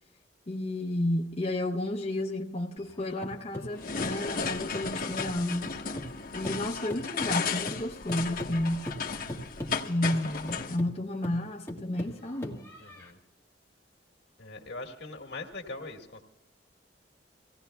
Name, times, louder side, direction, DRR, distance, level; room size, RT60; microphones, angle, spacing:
voice 1, 0.5-5.7 6.3-8.9 9.9-12.6, left 1 dB, 35° left, 0.8 m, -31 dB
sound 1, 2.8-6.2 6.4-13.1, left 1 dB, 15° left, 1.6 m, -41 dB
sound 2, 3.8-10.8, left 5 dB, 55° left, 1.3 m, -34 dB
voice 2, 12.8-13.2 14.4-16.2, left 2 dB, 75° left, 2.0 m, -41 dB
26.0 x 17.0 x 2.3 m
head